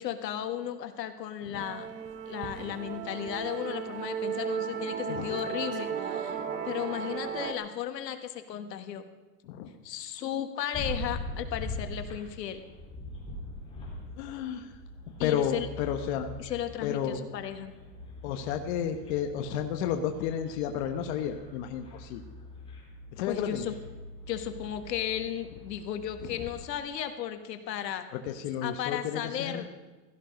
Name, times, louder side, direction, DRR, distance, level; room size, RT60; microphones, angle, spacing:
voice 1, 0.0-1.9 2.2-9.0 9.8-12.6 15.2-15.7 16.4-17.7 23.3-23.7 24.3-28.0 28.6-29.7, left 10 dB, 80° left, 8 dB, 1.7 m, -35 dB
Musical instrument, 1.5-7.5, right 7 dB, 15° right, 0.6 m, -35 dB
sound 1, 10.7-26.7, left 2 dB, 10° left, 4.1 m, -43 dB
voice 2, 14.2-14.7 15.2-16.3 16.8-17.2 18.2-22.2 23.1-23.7 28.1-29.6, left 8 dB, 40° left, 5 dB, 1.2 m, -32 dB
16.5 x 13.5 x 5.3 m, 1.2 s
supercardioid pair, 150°, 49 cm